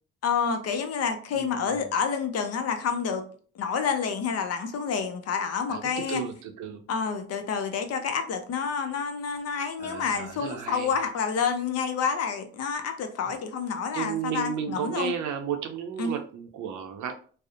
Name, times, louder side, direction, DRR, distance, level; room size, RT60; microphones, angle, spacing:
voice 1, 0.2-3.2 3.5-6.2 6.9-15.1 16.0-16.1, left 6 dB, 55° left, 7 dB, 0.5 m, -28 dB
voice 2, 1.3-1.9 5.7-6.8 9.8-10.9 13.9-17.1, right 7 dB, 70° right, 6 dB, 0.5 m, -33 dB
2.6 x 2.0 x 2.4 m, 0.43 s
cardioid pair, 90°, 30 cm